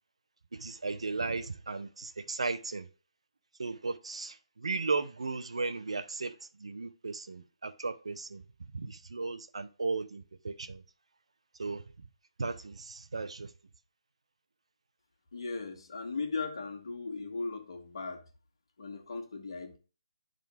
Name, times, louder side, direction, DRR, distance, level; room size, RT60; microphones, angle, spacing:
voice 1, 0.5-2.9 3.6-6.3 6.6-8.4 8.7-10.8 11.6-11.8 12.4-13.5, right 3 dB, 75° right, 0.7 m, -35 dB
voice 2, 15.3-18.2 18.8-19.8, left 4 dB, 55° left, 1.5 m, -37 dB
10.5 x 3.8 x 3.5 m
figure-of-eight pair, 155°, 3 cm